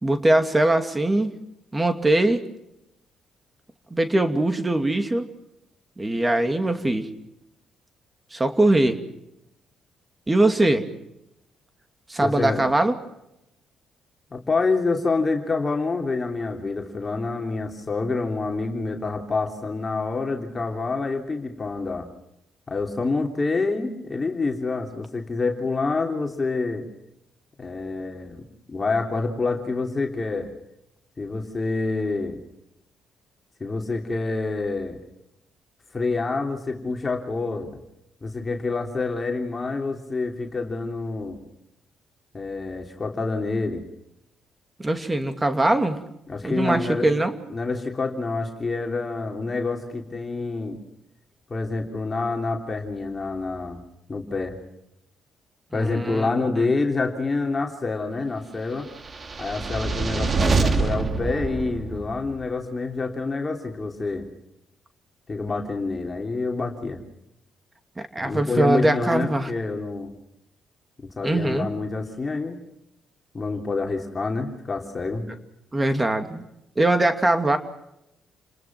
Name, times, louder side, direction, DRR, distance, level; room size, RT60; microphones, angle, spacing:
voice 1, 0.0-1.4 1.7-2.4 3.9-5.3 6.0-7.1 8.3-9.0 10.3-10.9 12.1-12.9 44.8-46.0 46.4-47.4 55.7-56.3 68.1-69.5 71.2-71.7 75.7-76.4 76.8-77.6, right 1 dB, 20° right, 7 dB, 2.5 m, -21 dB
voice 2, 12.2-12.6 14.3-22.1 22.7-26.9 27.6-28.4 28.7-30.5 31.2-32.4 33.6-35.0 35.9-37.7 38.2-41.4 42.3-43.8 46.3-47.1 47.5-50.8 51.5-53.8 54.1-54.6 55.7-58.9 59.4-64.3 65.3-67.0 68.2-70.1 71.2-72.6 73.3-75.2, left 3 dB, 30° left, 2 dB, 3.2 m, -27 dB
sound 1, 59.0-62.4, right 4 dB, 35° right, 2.4 m, -25 dB
29.5 x 20.0 x 6.1 m, 0.86 s
cardioid pair, 90°, 0 cm